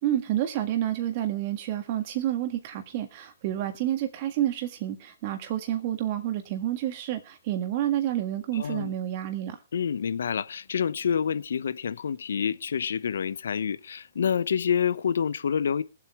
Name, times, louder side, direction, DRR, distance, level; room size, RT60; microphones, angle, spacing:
voice 1, 0.0-9.6, right 12 dB, 45° right, 1.8 m, -29 dB
voice 2, 8.5-8.9 9.7-15.8, left 7 dB, 75° left, 0.8 m, -27 dB
21.0 x 8.2 x 3.5 m
hypercardioid pair, 130°, 0 cm